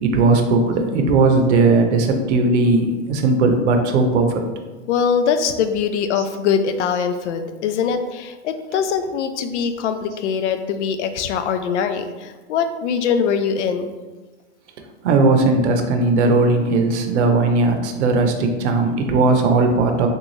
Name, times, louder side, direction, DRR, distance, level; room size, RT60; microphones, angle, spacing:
voice 1, 0.0-4.4 15.0-20.1, right 3 dB, 75° right, 4 dB, 0.7 m, -17 dB
voice 2, 4.9-13.9, left 6 dB, 80° left, 8 dB, 0.5 m, -22 dB
3.7 x 2.4 x 3.1 m, 1.2 s
hypercardioid pair, 120°, 35 cm